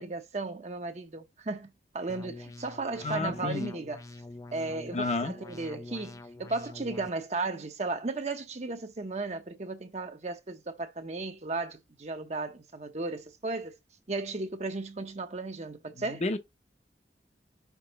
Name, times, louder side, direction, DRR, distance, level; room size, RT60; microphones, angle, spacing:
voice 1, 0.0-4.0 4.5-13.8 14.1-16.2, right 3 dB, 40° right, 0.7 m, -35 dB
sound 1, 2.1-7.1, left 2 dB, 20° left, 0.3 m, -46 dB
voice 2, 3.0-3.7 4.9-5.3 16.0-16.4, left 3 dB, 40° left, 0.8 m, -31 dB
6.0 x 3.2 x 5.3 m
head